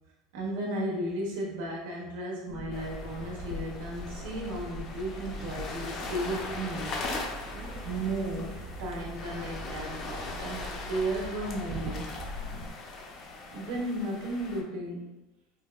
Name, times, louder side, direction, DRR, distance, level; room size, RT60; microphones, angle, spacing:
voice 1, 0.3-7.0 7.8-12.1 13.5-15.1, right 1 dB, 80° right, -2 dB, 1.0 m, -34 dB
sound 1, 2.5-12.7, right 1 dB, 35° right, 0.5 m, -42 dB
sound 2, 2.7-14.6, left 3 dB, 45° left, 0.5 m, -40 dB
sound 3, 3.5-11.4, left 3 dB, 65° left, 1.0 m, -55 dB
4.4 x 2.2 x 2.2 m, 0.99 s
supercardioid pair, 130°, 0 cm